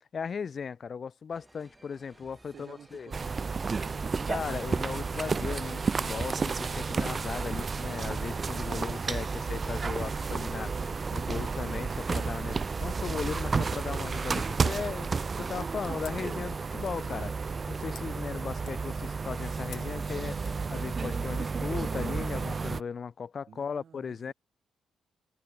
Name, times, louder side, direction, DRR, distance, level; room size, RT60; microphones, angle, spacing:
voice 1, 0.1-3.1 4.3-17.3 17.7-20.4 20.7-24.3, left 6 dB, 50° left, 0.9 m, -37 dB
sound 1, 1.3-10.9, right 2 dB, 15° right, 1.6 m, -56 dB
voice 2, 2.5-4.0 8.8-9.1 23.5-24.3, right 7 dB, 60° right, 3.5 m, -53 dB
sound 2, 3.1-22.8, right 4 dB, 40° right, 0.3 m, -32 dB
sound 3, 15.6-21.4, left 10 dB, 75° left, 5.5 m, -55 dB
cardioid pair, 70°, 0 cm